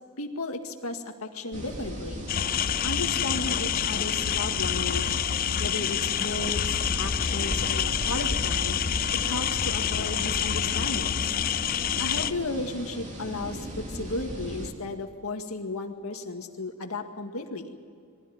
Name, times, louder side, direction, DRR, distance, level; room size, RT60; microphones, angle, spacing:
voice 1, 0.2-2.2 2.8-5.2 5.6-8.8 9.1-11.3 12.0-17.8, left 2 dB, 80° left, 4 dB, 2.0 m, -34 dB
sound 1, 1.5-14.7, equal, 35° right, 2.8 m, -36 dB
sound 2, 2.3-12.3, left 9 dB, 40° left, 0.4 m, -27 dB
22.5 x 15.5 x 9.5 m, 2.2 s
head